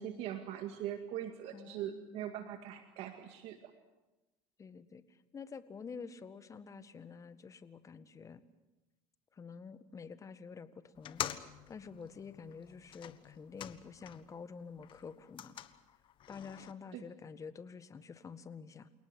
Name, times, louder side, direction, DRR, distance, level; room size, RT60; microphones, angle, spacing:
voice 1, 0.0-3.7 16.9-17.0, right 11 dB, 65° right, 6 dB, 2.1 m, -41 dB
voice 2, 1.5-2.6 4.6-8.4 9.3-11.2 11.7-15.6 16.3-18.9, left 5 dB, 30° left, 12 dB, 1.7 m, -49 dB
sound 1, 10.9-14.4 14.7-16.7, left 11 dB, 50° left, 1.4 m, -46 dB
28.5 x 18.5 x 8.0 m, 1.1 s
supercardioid pair, 95°, 11 cm